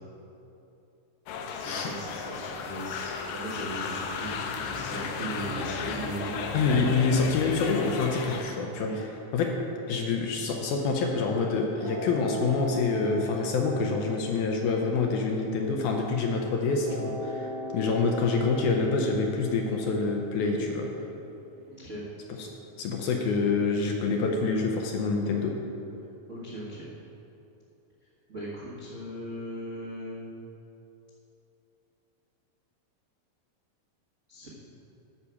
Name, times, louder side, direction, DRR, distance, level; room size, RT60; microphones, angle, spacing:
sound 1, 1.3-8.4, left 5 dB, 90° left, 2.3 m, -34 dB
voice 1, 1.5-6.4 8.8-9.0 21.7-22.1 26.3-26.9 28.3-30.3 34.3-34.5, right 1 dB, 60° right, -9 dB, 0.7 m, -38 dB
voice 2, 6.5-8.9 9.3-9.6 9.9-20.9 22.4-22.5 22.8-25.6, left 4 dB, 75° left, 1 dB, 2.0 m, -26 dB
sound 2, 11.8-16.2 16.8-21.8, equal, 80° right, 3.6 m, -40 dB
9.9 x 4.9 x 7.0 m, 2.9 s
omnidirectional pair, 4.0 m